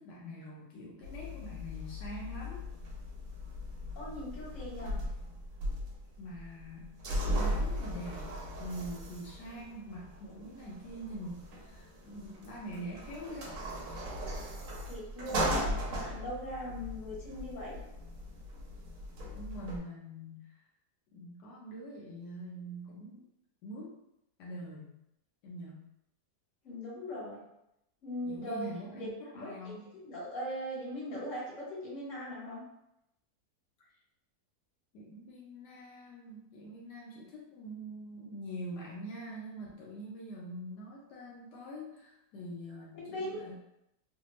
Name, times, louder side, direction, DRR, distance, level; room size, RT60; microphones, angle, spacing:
voice 1, 0.0-2.7 6.2-6.9 7.3-13.6 19.2-20.6 21.1-23.2 23.6-24.0 24.4-25.0 25.4-25.9 28.3-29.9 34.9-43.6, equal, 85° left, -4 dB, 1.2 m, -44 dB
sound 1, 1.0-19.8, equal, 65° right, 1.0 m, -38 dB
voice 2, 3.9-5.0 14.9-17.8 26.6-27.4 28.0-28.7 28.9-29.1 29.4-29.7 30.0-32.6 42.9-43.4, equal, 55° left, -6 dB, 1.4 m, -39 dB
3.3 x 2.1 x 2.9 m, 0.83 s
omnidirectional pair, 1.8 m